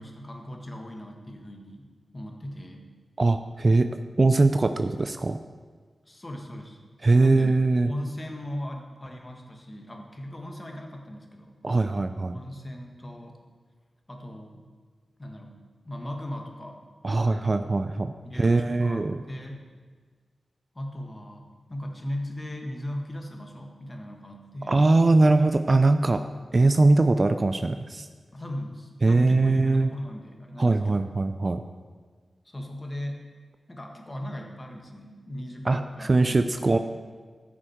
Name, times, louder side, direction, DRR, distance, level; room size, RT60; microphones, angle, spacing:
voice 1, 0.0-1.9 2.1-2.9 6.1-6.8 7.2-7.6 7.9-11.6 12.3-13.4 14.1-14.6 15.2-16.8 17.2-17.9 18.2-19.0 19.3-19.6 20.7-24.8 28.3-31.1 32.4-33.2 33.7-36.8, left 1 dB, 25° left, 2 dB, 1.6 m, -38 dB
voice 2, 3.2-3.9 4.2-5.4 7.0-7.9 11.6-12.3 17.0-18.1 18.4-19.2 24.7-26.2 26.5-28.1 29.0-29.9 30.6-31.6 35.7-36.8, right 3 dB, 40° right, 9 dB, 0.4 m, -21 dB
14.0 x 6.4 x 4.5 m, 1.5 s
wide cardioid pair, 70°, 0 cm